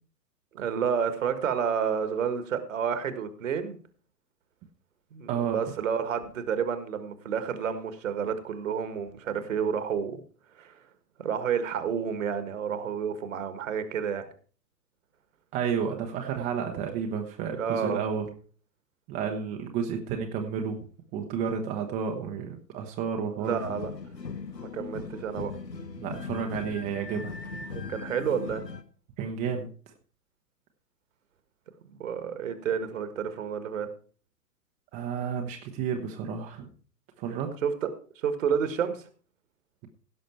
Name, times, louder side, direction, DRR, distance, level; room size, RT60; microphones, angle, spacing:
voice 1, 0.5-3.8 5.1-10.2 10.6-10.7 11.2-14.3 17.6-18.0 23.4-23.9 24.6-25.5 27.7-28.6 32.0-33.9 37.6-37.9 38.2-39.0, right 7 dB, 50° right, 10 dB, 1.7 m, -30 dB
voice 2, 5.3-5.6 15.5-18.3 19.1-20.8 21.1-23.6 26.0-27.3 29.2-29.7 34.9-36.7 37.2-37.5, right 7 dB, 15° right, 3 dB, 0.9 m, -31 dB
sound 1, 23.4-28.8, left 5 dB, 80° left, 1.2 m, -39 dB
16.5 x 6.4 x 4.4 m, 0.41 s
figure-of-eight pair, 115°, 49 cm